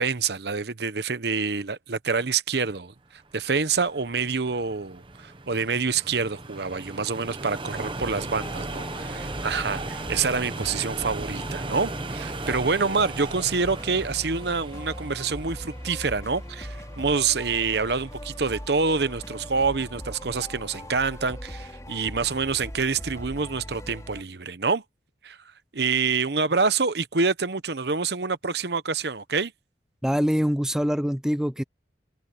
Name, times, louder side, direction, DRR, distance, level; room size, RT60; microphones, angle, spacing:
voice 1, 0.0-2.9 3.3-24.8 25.2-25.4 25.7-29.5, right 4 dB, 65° right, 0.9 m, -26 dB
sound 1, 3.2-21.5, right 2 dB, 30° right, 1.1 m, -38 dB
sound 2, 7.7-24.2, equal, 20° left, 4.0 m, -40 dB
voice 2, 30.0-31.6, equal, 5° right, 0.5 m, -24 dB
head